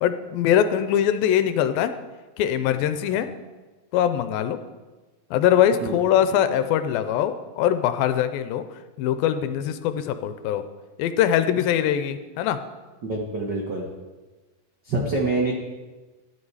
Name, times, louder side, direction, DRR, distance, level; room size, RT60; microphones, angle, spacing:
voice 1, 0.0-1.9 2.4-3.3 3.9-4.6 5.3-8.7 9.0-10.6 11.0-12.6, left 10 dB, 85° left, 10 dB, 2.4 m, -22 dB
voice 2, 13.0-13.9 14.8-15.5, right 2 dB, 85° right, -1 dB, 0.9 m, -26 dB
13.0 x 9.8 x 4.8 m, 1.2 s
omnidirectional pair, 4.2 m